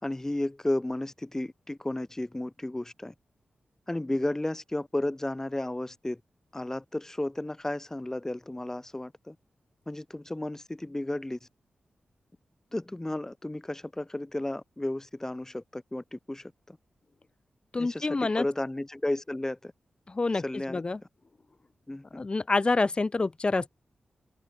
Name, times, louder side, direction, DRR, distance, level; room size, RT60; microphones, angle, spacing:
voice 1, 0.0-3.1 3.9-6.2 6.5-9.4 9.9-11.4 12.7-16.8 17.8-19.7 20.4-20.8 21.9-22.2, left 1 dB, 15° left, 3.9 m, -33 dB
voice 2, 17.7-18.5 20.1-21.0 22.1-23.7, left 3 dB, 35° left, 2.3 m, -27 dB
open air
cardioid pair, 75°, 3 cm